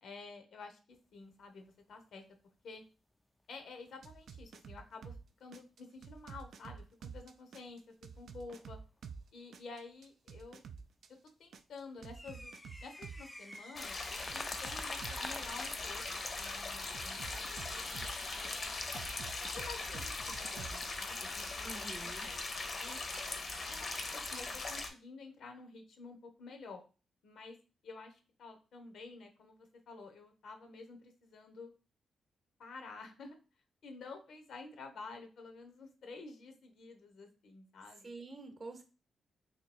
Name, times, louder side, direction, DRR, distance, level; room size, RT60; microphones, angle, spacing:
voice 1, 0.0-2.2 2.6-2.8 3.5-8.8 9.3-10.6 11.4-18.8 19.5-23.0 23.7-26.8 27.2-27.6 27.8-31.7 32.6-33.4 33.8-38.1, left 4 dB, 75° left, 5 dB, 0.9 m, -51 dB
sound 1, 1.3-1.8 2.0-2.1 2.8-2.9 3.6-4.2 4.7-5.2 5.9-6.7 7.3-7.4 7.7-7.8 8.5-9.1 9.7-9.8 10.4-10.5 10.6-11.0 11.6-16.2 16.8-16.9 17.6-17.9, left 1 dB, 10° left, 0.4 m, -50 dB
sound 2, 4.0-5.2 5.5-9.2 9.5-13.2 13.5-15.3 16.9-18.5 18.9-20.9, right 6 dB, 70° right, 0.4 m, -48 dB
sound 3, 13.7-24.9, left 3 dB, 45° left, 0.7 m, -40 dB
voice 2, 21.6-22.3 38.0-38.8, right 3 dB, 35° right, 6 dB, 0.8 m, -47 dB
2.9 x 2.8 x 4.1 m, 0.32 s
cardioid pair, 100°, 0 cm